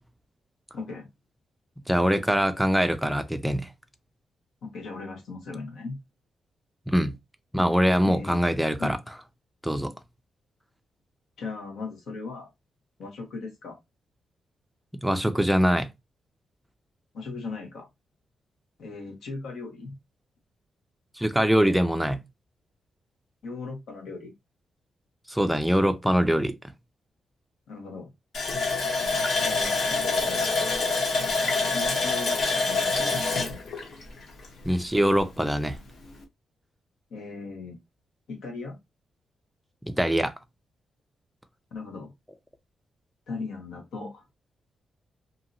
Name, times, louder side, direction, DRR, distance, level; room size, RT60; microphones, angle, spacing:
voice 1, 0.7-1.1 4.6-6.0 8.0-8.4 8.8-8.9 11.4-12.5 13.0-13.8 17.1-17.9 18.8-19.9 23.4-24.3 27.7-28.1 29.4-30.5 31.7-33.3 37.1-37.8 38.3-38.8 41.7-42.1 43.3-44.2, left 3 dB, 80° left, 1.3 m, -38 dB
voice 2, 1.9-3.7 6.9-7.1 7.5-9.0 9.6-9.9 15.0-15.9 21.2-22.2 25.3-26.5 34.6-35.8 39.9-40.3, equal, ahead, 0.4 m, -23 dB
Water tap faucet, 28.3-34.8 35.2-35.3 35.7-35.9, left 3 dB, 55° left, 0.9 m, -26 dB
2.8 x 2.7 x 2.6 m
wide cardioid pair, 175°, 0 cm